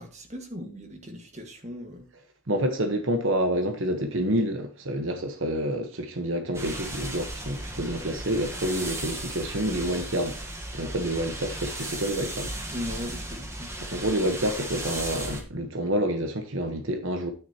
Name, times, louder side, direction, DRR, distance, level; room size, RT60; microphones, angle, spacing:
voice 1, 0.0-2.0 12.7-13.7, left 1 dB, 30° right, 1.7 m, -38 dB
voice 2, 2.5-12.5 13.9-17.3, right 1 dB, 65° right, 1.2 m, -28 dB
sound 1, 6.5-15.4, right 1 dB, 15° right, 1.3 m, -36 dB
9.8 x 9.3 x 2.9 m
head